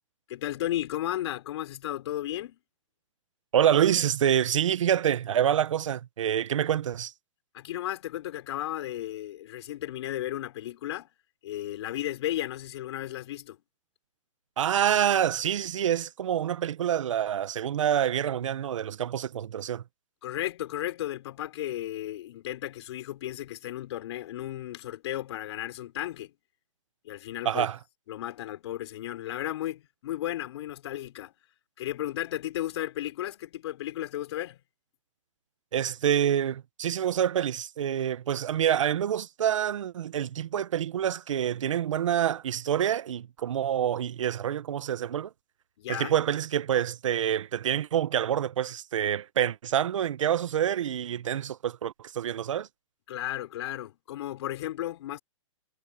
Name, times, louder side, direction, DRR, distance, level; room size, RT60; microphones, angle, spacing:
voice 1, 0.3-2.6 7.5-11.1 11.4-13.6 20.2-26.4 27.0-27.7 28.1-31.3 31.8-34.6 45.8-46.1 53.1-55.2, left 13 dB, 55° left, 5.3 m, -34 dB
voice 2, 3.5-7.1 14.6-19.8 27.4-27.8 35.7-45.3 45.9-52.7, right 10 dB, 70° right, 1.3 m, -27 dB
hypercardioid pair, 145°, 17 cm